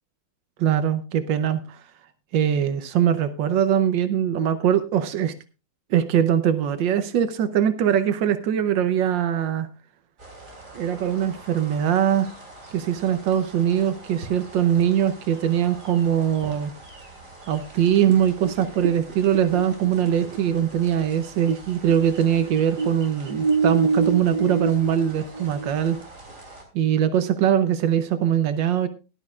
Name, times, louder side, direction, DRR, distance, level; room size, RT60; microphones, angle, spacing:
voice 1, 0.6-1.8 2.3-5.3 5.9-9.7 10.7-12.3 12.7-16.7 17.5-26.0 26.7-28.9, right 9 dB, 85° right, 10 dB, 1.5 m, -22 dB
sound 1, 10.2-26.6, right 2 dB, 45° right, 3.7 m, -44 dB
sound 2, 18.1-21.6 21.9-26.0, right 4 dB, 70° right, 1.3 m, -26 dB
17.5 x 11.5 x 2.4 m, 0.31 s
omnidirectional pair, 1.9 m